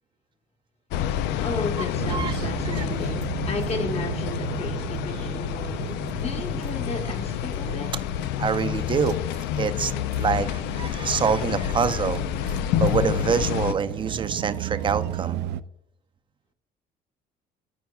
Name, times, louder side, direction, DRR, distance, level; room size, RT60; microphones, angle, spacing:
sound 1, 0.9-13.7, left 11 dB, 90° left, 0.4 m, -28 dB
voice 1, 1.4-5.9 6.2-7.9, left 4 dB, 40° left, 1.1 m, -33 dB
sound 2, 2.0-15.6, right 13 dB, 85° right, 0.4 m, -35 dB
voice 2, 8.4-9.2 9.6-15.4, right 6 dB, 30° right, 0.5 m, -26 dB
13.0 x 4.6 x 2.3 m
cardioid pair, 110°, 17 cm